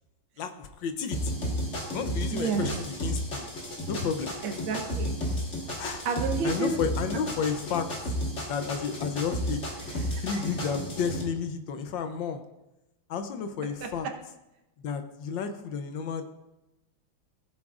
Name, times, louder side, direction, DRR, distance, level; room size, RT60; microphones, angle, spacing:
voice 1, 0.4-1.3 1.9-3.5 3.9-4.4 5.8-6.1 6.4-7.9 8.5-9.6 10.2-12.4 13.1-14.1 14.8-16.2, left 6 dB, 70° left, 8 dB, 1.4 m, -32 dB
sound 1, 1.1-11.2, equal, 35° left, 1.9 m, -33 dB
voice 2, 2.3-2.7 4.4-5.2 6.1-6.8 9.8-10.4, right 4 dB, 75° right, 4 dB, 1.8 m, -31 dB
16.0 x 8.2 x 2.5 m, 0.94 s
omnidirectional pair, 2.2 m